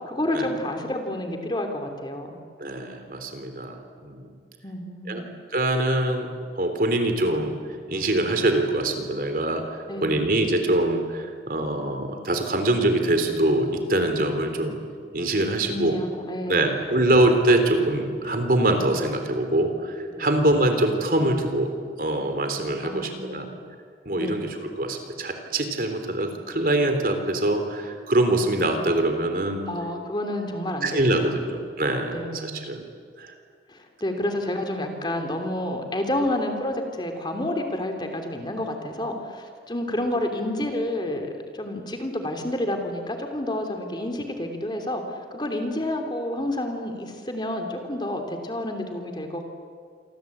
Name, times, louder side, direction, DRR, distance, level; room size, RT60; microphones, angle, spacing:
voice 1, 0.0-2.4 4.6-5.3 9.9-10.3 15.7-17.1 20.1-20.3 22.8-23.6 24.2-24.4 29.7-31.4 32.1-32.7 33.7-49.4, left 1 dB, 25° left, 4 dB, 2.9 m, -30 dB
voice 2, 2.6-4.3 5.1-5.2 5.5-7.5 7.9-14.8 15.1-16.0 16.5-21.7 22.0-23.5 24.0-29.7 30.8-32.8 33.2-33.3, right 1 dB, 55° right, 6 dB, 3.4 m, -24 dB
27.5 x 23.5 x 8.7 m, 2.1 s
head